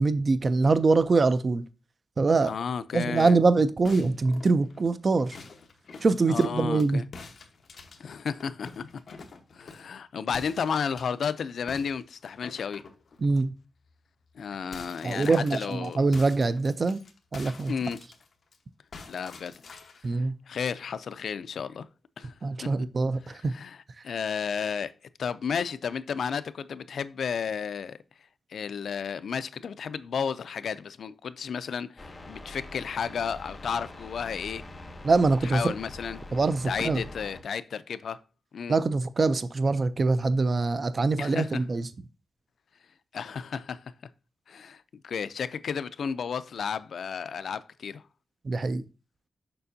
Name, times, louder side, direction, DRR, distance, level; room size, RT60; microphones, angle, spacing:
voice 1, 0.0-1.6 2.2-2.5 2.9-5.4 6.0-7.0 13.2-13.5 15.0-17.0 17.3-17.7 20.0-20.3 22.4-23.5 24.0-24.1 35.0-35.7 36.3-37.0 38.7-41.9 48.4-48.8, right 3 dB, 40° right, 0.4 m, -24 dB
voice 2, 2.4-3.4 6.3-7.0 8.0-8.9 9.5-12.8 14.4-16.0 17.7-18.0 19.1-19.5 20.1-21.9 22.2-22.3 23.5-23.8 24.0-24.9 25.2-28.0 28.5-34.6 35.5-36.2 36.7-38.2 38.5-38.8 41.2-41.5 43.1-43.8 44.5-48.0, left 6 dB, 75° left, 0.4 m, -32 dB
sound 1, 3.8-6.9 7.1-9.9 10.3-11.3 11.7-13.4 13.8-14.0 14.3-18.6 18.9-20.1, left 4 dB, 55° left, 1.0 m, -47 dB
sound 2, 32.0-37.4, left 2 dB, 20° left, 0.8 m, -44 dB
6.8 x 5.7 x 2.6 m
wide cardioid pair, 135°, 0 cm